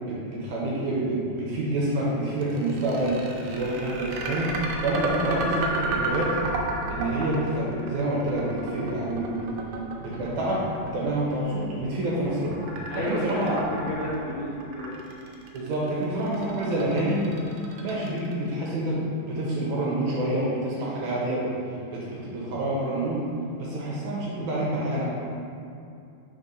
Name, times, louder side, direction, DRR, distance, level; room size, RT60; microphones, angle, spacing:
voice 1, 0.1-3.2 3.5-6.4 6.9-9.6 10.0-12.5 12.9-13.6 15.5-17.2 17.8-21.5 21.9-23.2 23.6-25.0, right 1 dB, 70° right, -5 dB, 2.0 m, -27 dB
sound 1, 2.4-18.5, right 3 dB, 85° right, 2.3 m, -33 dB
voice 2, 12.9-14.9, left 1 dB, 70° left, -7 dB, 1.8 m, -31 dB
4.6 x 4.3 x 5.2 m, 2.5 s
omnidirectional pair, 3.9 m